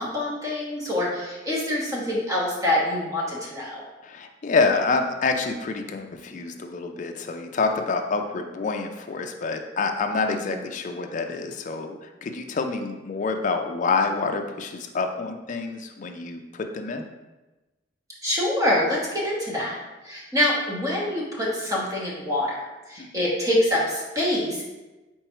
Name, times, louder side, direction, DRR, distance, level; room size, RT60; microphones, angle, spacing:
voice 1, 0.0-3.8 10.3-10.5 18.2-19.8 20.0-22.6 22.9-24.6, left 1 dB, 20° right, -4 dB, 1.0 m, -25 dB
voice 2, 4.0-17.1 23.0-23.2, left 4 dB, 45° left, 5 dB, 0.4 m, -27 dB
4.4 x 3.8 x 3.0 m, 1.1 s
head